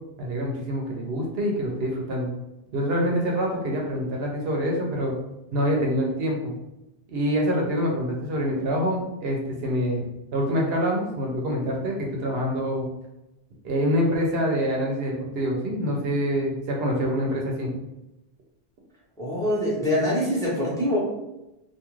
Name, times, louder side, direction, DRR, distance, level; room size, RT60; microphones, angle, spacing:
voice 1, 0.2-2.3 2.7-5.1 5.5-6.5 7.1-10.0 10.3-12.9 13.6-17.7, equal, 75° right, -1 dB, 0.8 m, -26 dB
voice 2, 19.2-21.0, left 1 dB, 5° left, -7 dB, 0.8 m, -24 dB
2.5 x 2.3 x 3.0 m, 0.93 s
omnidirectional pair, 1.0 m